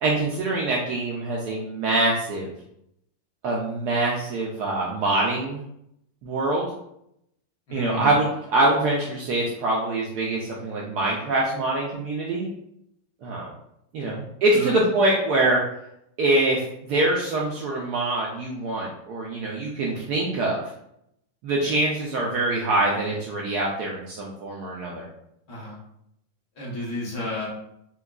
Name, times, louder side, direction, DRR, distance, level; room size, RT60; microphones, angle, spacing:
voice 1, 0.0-2.5 3.4-5.6 6.2-6.7 7.7-12.5 13.2-13.5 13.9-15.6 16.2-20.6 21.4-25.0, right 2 dB, 75° right, -3 dB, 0.9 m, -24 dB
voice 2, 7.7-8.1 14.0-14.2 14.5-14.8 25.5-25.8 26.5-27.5, left 1 dB, 60° left, -5 dB, 1.5 m, -31 dB
4.5 x 2.3 x 2.3 m, 0.76 s
omnidirectional pair, 2.1 m